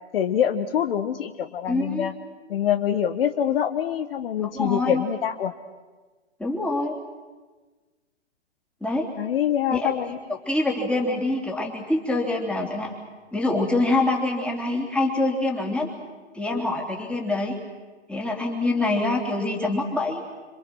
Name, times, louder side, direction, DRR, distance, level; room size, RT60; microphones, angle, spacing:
voice 1, 0.1-2.1 2.5-5.5 9.2-10.2, left 9 dB, 55° left, 9 dB, 1.3 m, -25 dB
voice 2, 1.7-2.1 4.4-5.0 6.4-6.9 8.8-9.1 9.7-9.9 10.5-12.9 13.3-15.9 16.3-17.6 18.1-20.2, left 2 dB, 5° left, 0 dB, 3.3 m, -25 dB
27.0 x 25.5 x 6.4 m, 1.3 s
hypercardioid pair, 140°, 35 cm